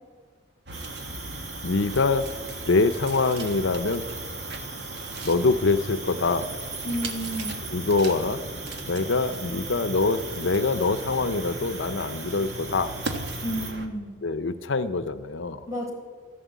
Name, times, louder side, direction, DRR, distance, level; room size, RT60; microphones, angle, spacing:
Cricket, 0.7-13.7, right 4 dB, 40° right, 2.1 m, -39 dB
sound 1, 0.7-13.9, right 2 dB, 60° right, 1.5 m, -38 dB
voice 1, 1.6-2.3 2.7-4.0 5.2-6.5 7.7-8.4 8.9-12.9 14.2-15.6, left 3 dB, 80° left, 12 dB, 0.7 m, -24 dB
voice 2, 6.8-7.6 13.4-14.1 15.7-15.9, equal, 15° right, -1 dB, 4.2 m, -31 dB
13.5 x 11.5 x 8.2 m, 1.5 s
head